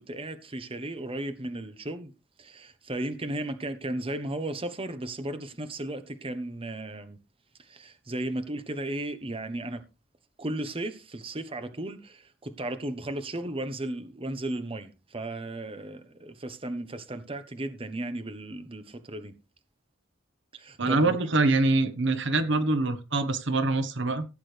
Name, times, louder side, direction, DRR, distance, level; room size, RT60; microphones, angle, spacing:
voice 1, 0.0-2.1 2.4-7.2 7.7-9.8 10.4-19.3 20.6-21.2, right 1 dB, 30° right, 1.2 m, -35 dB
voice 2, 20.8-24.2, right 2 dB, 65° right, 1.4 m, -24 dB
16.5 x 8.6 x 3.4 m
head